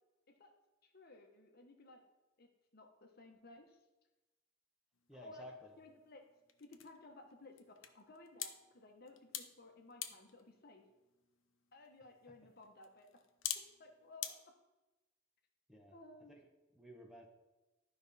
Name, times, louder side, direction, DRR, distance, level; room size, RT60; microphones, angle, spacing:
voice 1, 0.8-2.0 2.4-3.8 5.2-5.4 5.8-6.2 6.6-10.8 11.7-13.1 13.8-14.4 15.9-16.4, left 2 dB, 50° left, 3 dB, 1.1 m, -57 dB
sound 1, 4.9-14.3, left 10 dB, 75° left, 0.7 m, -49 dB
voice 2, 5.1-5.8 15.7-16.0 16.3-16.4 16.7-17.3, left 1 dB, 5° right, 1 dB, 1.0 m, -54 dB
12.0 x 5.3 x 4.1 m, 1.1 s
head